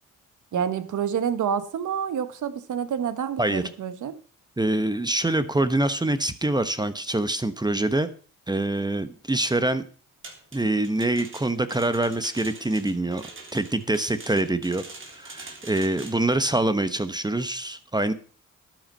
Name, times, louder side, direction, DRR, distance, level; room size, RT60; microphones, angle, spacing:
voice 1, 0.5-4.1, right 8 dB, 65° right, 13 dB, 1.5 m, -28 dB
voice 2, 4.6-8.1 8.5-9.8 10.5-13.2 13.5-14.8 15.2-18.1, right 2 dB, 15° right, 13 dB, 1.1 m, -25 dB
sound 1, 10.2-16.3, right 3 dB, 35° right, 3.6 m, -44 dB
12.0 x 9.3 x 5.5 m, 0.41 s
cardioid pair, 75°, 33 cm